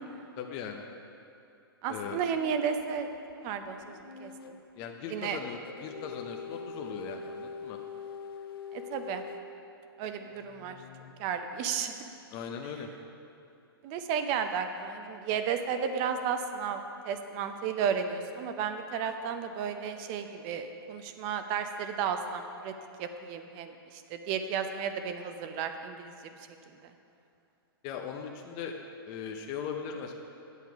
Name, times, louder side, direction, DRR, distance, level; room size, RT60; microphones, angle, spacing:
voice 1, 0.4-0.9 1.9-2.2 4.8-7.8 12.3-12.9 27.8-28.7 29.1-30.1, left 7 dB, 35° left, 3 dB, 0.7 m, -39 dB
voice 2, 1.8-3.1 3.4-4.6 5.1-5.4 8.7-9.2 10.0-10.8 11.2-12.1 13.8-22.7 23.0-26.1, right 7 dB, 35° right, 7 dB, 0.7 m, -33 dB
sound 1, 2.4-4.6 5.6-9.5 10.2-11.1, left 5 dB, 70° left, 0.7 m, -44 dB
8.9 x 8.3 x 4.7 m, 2.6 s
hypercardioid pair, 125°, 13 cm